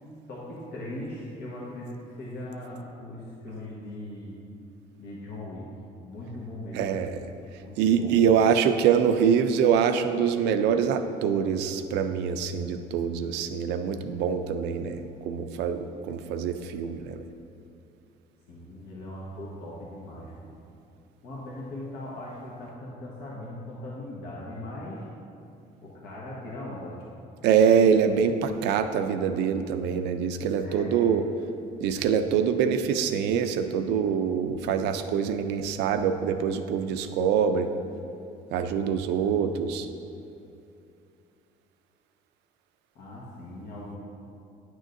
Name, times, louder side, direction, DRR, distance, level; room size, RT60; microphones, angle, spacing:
voice 1, 0.3-4.3 5.0-5.7 6.0-7.0 7.5-8.2 18.5-20.6 21.2-25.0 25.8-27.1 30.6-31.3 42.9-44.0, left 1 dB, 70° left, -6 dB, 1.3 m, -39 dB
voice 2, 6.7-7.3 7.8-17.2 27.4-31.2 31.8-37.7 38.5-39.9, right 7 dB, 90° right, 8 dB, 0.5 m, -24 dB
9.7 x 6.4 x 2.6 m, 2.6 s
cardioid pair, 110°, 17 cm